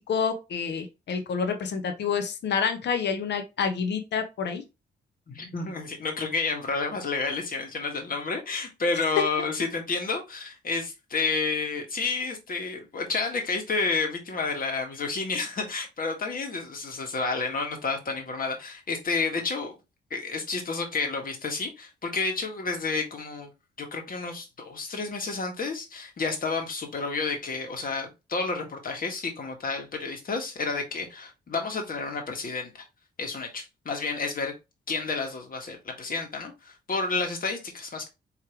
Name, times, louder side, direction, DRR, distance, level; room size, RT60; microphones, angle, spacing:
voice 1, 0.1-4.6, left 6 dB, 70° left, 0.9 m, -28 dB
voice 2, 5.3-19.8 20.1-23.5 23.8-32.8 33.2-34.5 34.9-38.1, left 4 dB, 50° left, 1.7 m, -30 dB
4.9 x 3.2 x 3.0 m
cardioid pair, 85°, 19 cm